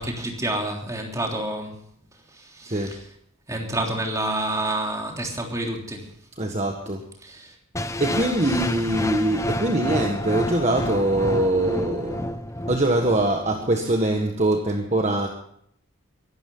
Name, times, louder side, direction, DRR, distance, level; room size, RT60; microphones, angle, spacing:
voice 1, 0.0-1.8 2.3-3.0 3.5-6.1 7.2-7.5, right 1 dB, 15° right, 0 dB, 3.4 m, -28 dB
voice 2, 6.4-7.0 8.0-12.3 12.7-15.3, right 1 dB, 30° right, 2 dB, 1.6 m, -23 dB
sound 1, 7.7-13.8, left 1 dB, 15° left, 0.7 m, -29 dB
23.5 x 12.5 x 3.9 m, 0.66 s
head